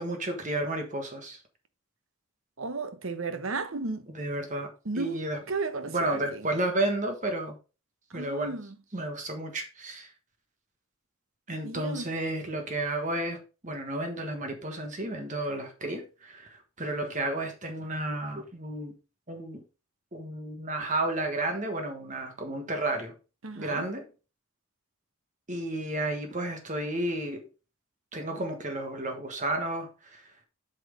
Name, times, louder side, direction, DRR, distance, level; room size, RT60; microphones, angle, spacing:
voice 1, 0.0-1.4 4.1-4.7 4.9-5.4 5.9-7.6 8.1-8.5 8.9-10.1 11.5-19.0 19.3-19.6 20.1-23.1 23.5-24.0 25.5-27.5 28.1-30.3, right 1 dB, 35° right, 1.3 m, -32 dB
voice 2, 2.6-4.1 4.8-6.5 8.1-8.8 11.6-12.1 23.4-23.9, right 3 dB, 70° right, 1.0 m, -34 dB
8.2 x 4.4 x 5.1 m
head